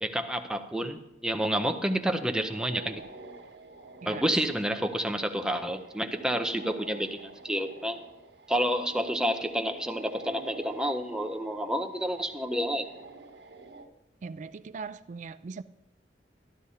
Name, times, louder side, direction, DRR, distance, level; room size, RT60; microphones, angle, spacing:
voice 1, 0.0-3.0 4.0-8.0 8.5-12.9, equal, 5° right, 0.6 m, -29 dB
sound 1, 2.1-13.8, right 2 dB, 90° right, 1.2 m, -48 dB
voice 2, 4.0-4.3 14.2-15.6, right 5 dB, 45° right, 0.3 m, -40 dB
12.5 x 12.5 x 2.8 m
head